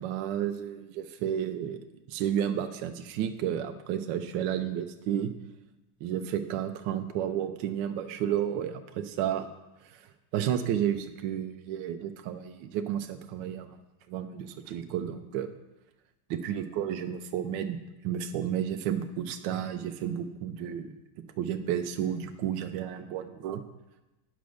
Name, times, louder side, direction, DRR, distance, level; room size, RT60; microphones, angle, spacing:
voice 1, 0.0-1.8 2.1-5.3 6.0-9.5 9.8-10.0 10.3-13.8 14.1-15.5 16.3-17.8 18.0-20.9 21.4-23.6, right 9 dB, 75° right, 7 dB, 1.1 m, -32 dB
9.4 x 5.1 x 6.3 m, 0.99 s
omnidirectional pair, 2.4 m